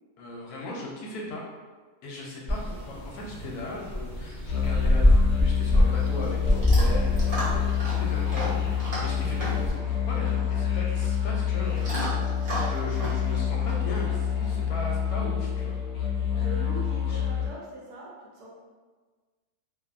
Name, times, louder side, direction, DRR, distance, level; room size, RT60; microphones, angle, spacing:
voice 1, 0.2-1.5 2.0-7.6 8.0-12.1 12.6-15.8 17.1-17.2, left 2 dB, 75° left, -3 dB, 1.0 m, -38 dB
sound 1, 2.5-9.7, left 1 dB, 15° right, 1.2 m, -25 dB
sound 2, 4.5-17.5, left 9 dB, 55° left, 0.6 m, -27 dB
Chewing mastication / Dog, 5.5-14.6, right 1 dB, 45° right, 0.8 m, -37 dB
voice 2, 16.3-18.5, right 1 dB, 70° right, -5 dB, 1.1 m, -40 dB
2.6 x 2.5 x 2.3 m, 1.4 s
omnidirectional pair, 1.7 m